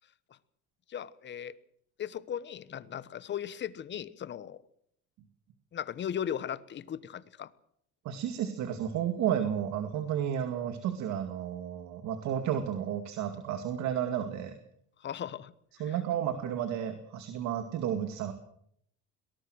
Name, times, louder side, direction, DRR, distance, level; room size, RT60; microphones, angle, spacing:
voice 1, 0.9-1.6 2.0-4.6 5.7-7.5 15.0-15.5, left 9 dB, 40° left, 17 dB, 1.2 m, -37 dB
voice 2, 8.0-14.6 15.8-18.3, right 9 dB, 70° right, 8 dB, 2.3 m, -32 dB
22.5 x 19.5 x 6.4 m, 0.68 s
cardioid pair, 140°, 29 cm